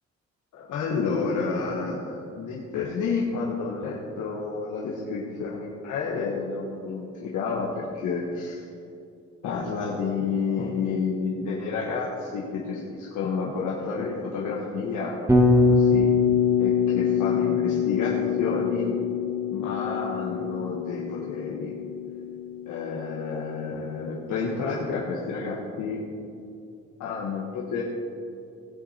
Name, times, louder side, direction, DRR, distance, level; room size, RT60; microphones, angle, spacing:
voice 1, 0.5-8.7 9.4-16.1 16.6-19.0 19.5-21.7 22.7-26.0 27.0-27.8, left 4 dB, 85° left, -4 dB, 1.4 m, -30 dB
Bass guitar, 15.3-23.4, left 5 dB, 10° right, 1.9 m, -24 dB
17.0 x 7.9 x 4.3 m, 2.6 s
cardioid pair, 90°, 30 cm